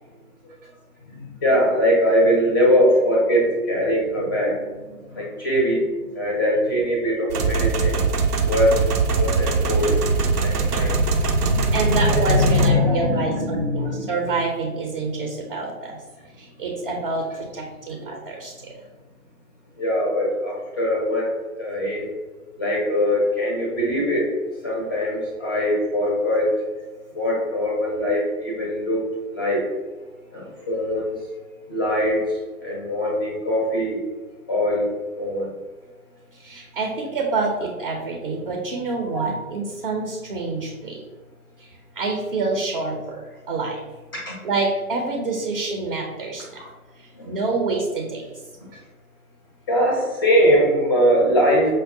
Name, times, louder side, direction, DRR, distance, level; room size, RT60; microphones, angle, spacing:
voice 1, 1.1-8.0 8.4-10.0 10.2-14.1 19.8-22.1 22.6-24.3 24.6-26.5 27.1-29.6 30.3-31.2 31.7-34.0 34.5-34.9 35.2-35.5 39.1-39.3 44.1-44.3 47.1-47.3 49.7-51.7, equal, 15° left, -3 dB, 0.4 m, -22 dB
sound 1, 7.3-12.7, right 4 dB, 90° right, 0.6 m, -21 dB
voice 2, 11.7-16.0 16.4-18.7 36.3-41.0 41.6-43.8 44.4-46.6 47.0-48.2, right 3 dB, 40° right, 0 dB, 0.5 m, -27 dB
5.2 x 2.0 x 2.5 m, 1.3 s
figure-of-eight pair, 120°, 45 cm